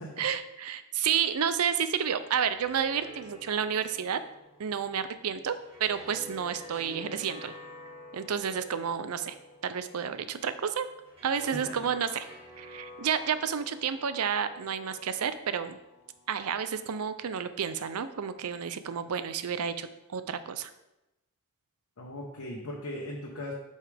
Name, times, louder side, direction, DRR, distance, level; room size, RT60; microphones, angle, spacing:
voice 1, 0.2-4.2 4.6-5.5 5.8-7.5 8.1-9.3 9.6-10.9 11.2-12.3 12.6-15.8 16.3-20.7, right 7 dB, 85° right, 12 dB, 0.5 m, -30 dB
sound 1, 2.2-17.4, left 1 dB, 30° right, 2.0 m, -49 dB
voice 2, 22.0-23.5, left 1 dB, 80° left, -3 dB, 1.2 m, -38 dB
8.5 x 5.3 x 3.4 m, 0.95 s
head